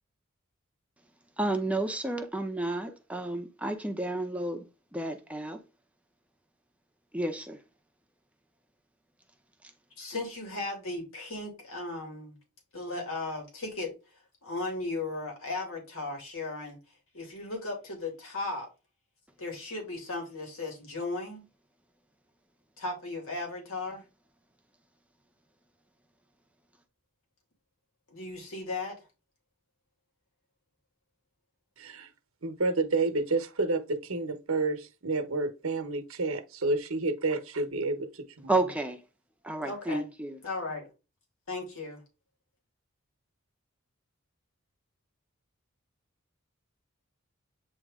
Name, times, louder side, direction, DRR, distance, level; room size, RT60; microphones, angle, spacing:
voice 1, 1.4-4.6 4.9-5.6 7.1-7.6 38.5-39.0 39.4-40.4, right 2 dB, 5° right, 0.7 m, -31 dB
voice 2, 10.0-12.3 12.7-13.9 14.4-16.8 17.1-18.7 19.4-21.4 22.8-24.0 28.1-29.0 39.6-40.0 40.4-40.9 41.5-42.0, left 2 dB, 80° left, 2.6 m, -36 dB
voice 3, 31.8-32.1 32.4-38.5, right 3 dB, 75° right, 1.1 m, -30 dB
8.7 x 3.0 x 3.6 m
head